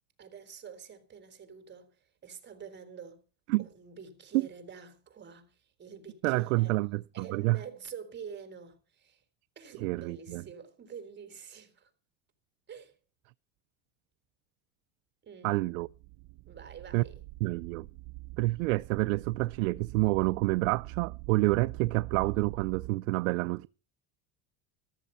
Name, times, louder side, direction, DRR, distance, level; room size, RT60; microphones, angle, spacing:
voice 1, 0.2-3.2 3.6-6.8 7.1-9.2 9.6-11.9 12.7-13.0 15.2-15.6 16.4-17.2, right 7 dB, 25° right, 3.8 m, -47 dB
voice 2, 6.2-7.6 9.8-10.4 15.4-15.9 16.9-17.0 17.4-17.9 18.4-23.7, right 21 dB, 90° right, 0.7 m, -28 dB
sound 1, 15.8-22.9, right 21 dB, 60° right, 0.9 m, -44 dB
14.0 x 13.0 x 5.6 m
supercardioid pair, 135°, 39 cm